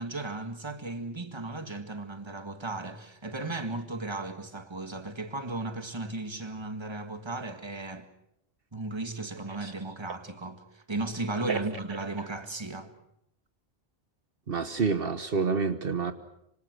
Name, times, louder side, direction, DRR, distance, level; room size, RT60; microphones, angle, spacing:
voice 1, 0.0-8.1 8.7-12.9, right 2 dB, 25° right, 1.8 m, -35 dB
voice 2, 14.5-16.1, right 5 dB, 65° right, 1.4 m, -28 dB
26.0 x 26.0 x 6.5 m
omnidirectional pair, 1.0 m